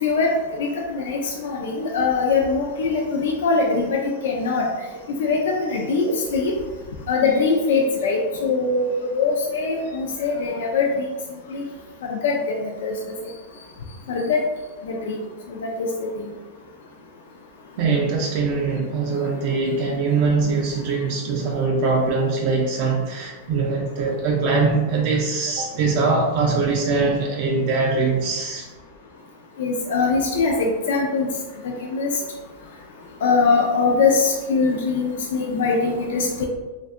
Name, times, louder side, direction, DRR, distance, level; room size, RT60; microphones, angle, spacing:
voice 1, 0.0-4.7 5.2-6.5 7.1-10.9 11.5-11.6 12.1-12.5 12.8-12.9 14.1-14.5 14.9-15.2 15.5-16.1 29.6-31.3 31.6-32.1 33.2-36.5, left 4 dB, 75° left, 0 dB, 0.3 m, -22 dB
voice 2, 17.8-28.7, right 4 dB, 50° right, -1 dB, 0.3 m, -22 dB
2.6 x 2.2 x 2.3 m, 1.2 s
supercardioid pair, 155°, 0 cm